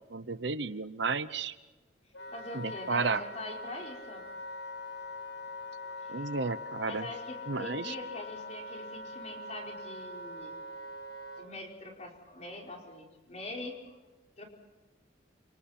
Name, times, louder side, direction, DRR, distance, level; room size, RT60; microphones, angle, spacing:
voice 1, 0.1-1.6 2.5-3.2 6.1-7.1 7.5-7.9, right 4 dB, 75° right, 13 dB, 0.9 m, -32 dB
Wind instrument woodwind instrument, 2.1-11.5, left 2 dB, 85° left, 5.1 m, -43 dB
voice 2, 2.3-4.2 6.0-6.3 6.8-10.6 11.4-13.8 14.4-14.5, left 2 dB, 35° left, 0 dB, 5.0 m, -43 dB
28.5 x 26.5 x 4.5 m, 1.2 s
head